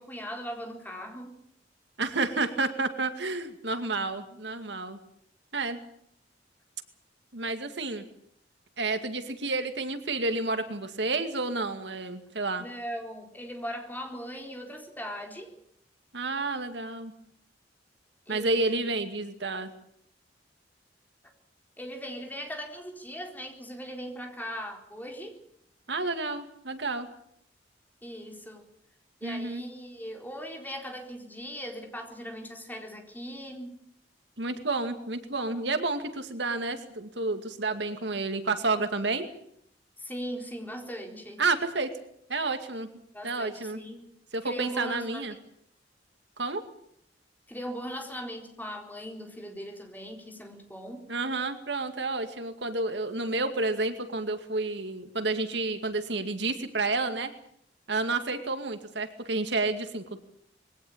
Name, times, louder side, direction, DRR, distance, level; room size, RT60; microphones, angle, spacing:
voice 1, 0.0-1.4 12.6-15.5 18.3-18.7 21.8-25.4 28.0-28.7 29.2-33.8 40.0-41.4 43.1-44.1 44.4-45.3 47.5-51.1, equal, 10° left, 3 dB, 4.1 m, -39 dB
voice 2, 2.0-5.0 5.5-5.8 7.3-8.0 8.8-12.6 16.1-17.1 18.3-19.7 25.9-27.1 29.2-29.6 34.4-39.3 41.4-41.9 42.3-42.9 43.2-43.8 44.3-45.3 46.4-46.6 51.1-57.3 57.9-60.2, right 3 dB, 70° right, 8 dB, 2.3 m, -30 dB
22.0 x 17.5 x 8.7 m, 0.70 s
head